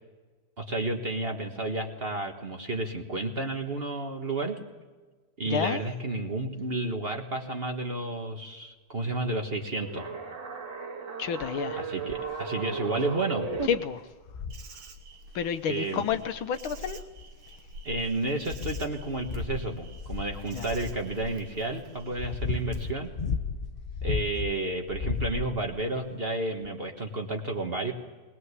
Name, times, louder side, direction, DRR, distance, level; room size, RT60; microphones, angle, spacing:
voice 1, 0.6-4.6 5.4-10.1 11.8-13.6 15.7-16.1 17.8-23.1 24.0-27.9, right 2 dB, 30° right, 1.5 m, -31 dB
voice 2, 5.5-5.8 11.2-11.8 13.7-14.1 15.3-17.0 20.5-20.7, left 8 dB, 80° left, 1.8 m, -30 dB
sound 1, 9.8-13.7, right 4 dB, 55° right, 2.6 m, -35 dB
sound 2, 12.1-12.4 13.0-13.1 13.5-13.8 14.3-14.7 16.1-16.2 17.0-17.7 18.2-21.0 21.8-24.5 24.9-25.8 26.6-26.7, left 5 dB, 45° left, 0.7 m, -34 dB
Insect, 14.5-22.9, right 1 dB, 80° right, 2.2 m, -46 dB
20.5 x 20.0 x 8.3 m
omnidirectional pair, 2.2 m